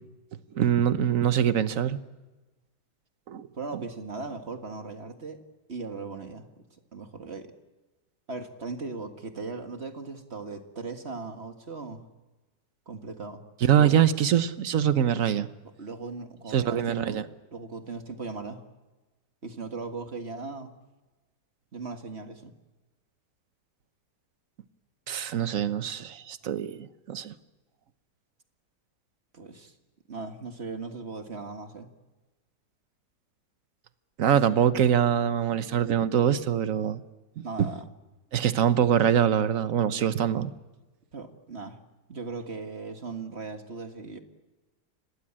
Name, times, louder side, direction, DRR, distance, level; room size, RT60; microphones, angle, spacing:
voice 1, 0.5-2.0 3.3-3.5 3.7-3.8 13.6-15.5 16.5-17.2 25.1-27.3 34.2-37.0 37.4-37.7 38.3-40.5, right 9 dB, 55° right, 13 dB, 1.3 m, -24 dB
voice 2, 3.5-5.4 5.7-7.5 8.3-12.0 12.9-13.4 13.8-14.0 15.8-17.2 17.5-18.6 19.4-20.7 21.7-22.5 29.3-29.7 30.1-31.9 37.4-37.9 41.1-41.8 42.1-44.2, right 4 dB, 40° right, 7 dB, 1.9 m, -38 dB
26.5 x 19.0 x 8.8 m, 1.2 s
omnidirectional pair, 1.8 m